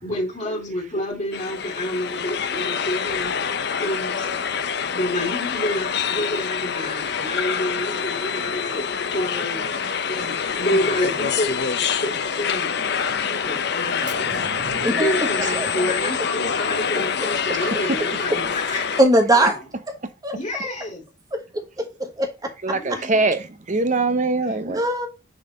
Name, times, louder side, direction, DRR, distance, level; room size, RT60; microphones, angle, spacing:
voice 1, 0.0-3.3 3.8-4.3 4.9-8.8 9.1-9.8 10.1-11.5 12.0-12.7 13.2-14.4 14.9-19.0 19.3-19.6 20.3-21.0 22.7-23.2 24.5-24.6, left 1 dB, 35° left, 3.1 m, -28 dB
sound 1, 1.3-19.0, left 6 dB, 55° left, 0.7 m, -26 dB
voice 2, 14.2-14.9 15.4-15.6 17.5-17.9 22.6-24.8, right 3 dB, 40° right, 0.8 m, -24 dB
voice 3, 14.8-15.3 15.6-16.1 17.0-17.3 19.0-19.6 19.9-20.0 20.2-20.3 21.3-21.4 21.8-21.9 22.2-22.5 24.7-25.1, right 1 dB, 20° right, 1.3 m, -21 dB
6.8 x 4.1 x 3.9 m
head